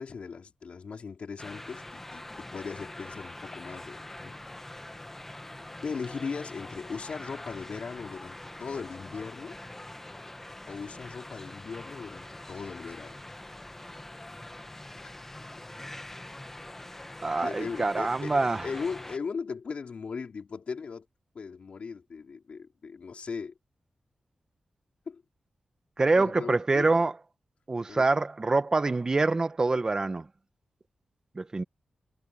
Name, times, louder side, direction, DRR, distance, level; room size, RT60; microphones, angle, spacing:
voice 1, 0.0-4.3 5.8-9.6 10.7-13.2 17.4-21.1 21.3-23.5 25.1-25.2 26.2-26.9 27.9-28.1, left 5 dB, 60° left, 4.1 m, -38 dB
sound 1, 1.4-19.2, left 1 dB, 15° left, 1.3 m, -44 dB
voice 2, 17.2-18.7 26.0-27.1 27.7-30.3 31.3-31.6, right 3 dB, 30° right, 1.2 m, -25 dB
wide cardioid pair, 130°, 2 cm